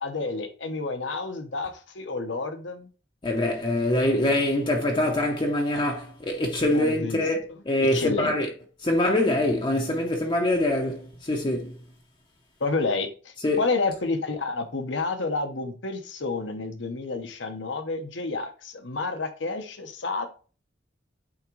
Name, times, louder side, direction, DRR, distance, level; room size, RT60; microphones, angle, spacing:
voice 1, 0.0-2.9 6.7-7.2 7.5-7.6 7.9-8.3 12.6-20.3, left 3 dB, 75° left, 1.0 m, -30 dB
voice 2, 3.2-8.5 8.8-11.8 13.4-13.6, left 1 dB, 25° left, 0.8 m, -24 dB
8.7 x 3.6 x 3.1 m
head